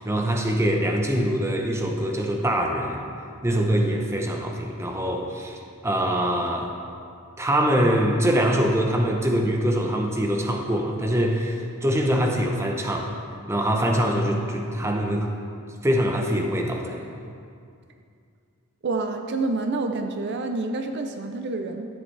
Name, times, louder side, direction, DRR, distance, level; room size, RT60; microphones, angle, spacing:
voice 1, 0.0-3.0 3.4-5.6 5.8-6.7 7.4-13.1 13.5-15.3 15.8-17.0, equal, 10° right, 2 dB, 0.7 m, -23 dB
voice 2, 18.8-21.9, right 3 dB, 50° right, 5 dB, 0.5 m, -28 dB
13.0 x 8.0 x 3.3 m, 2.4 s
head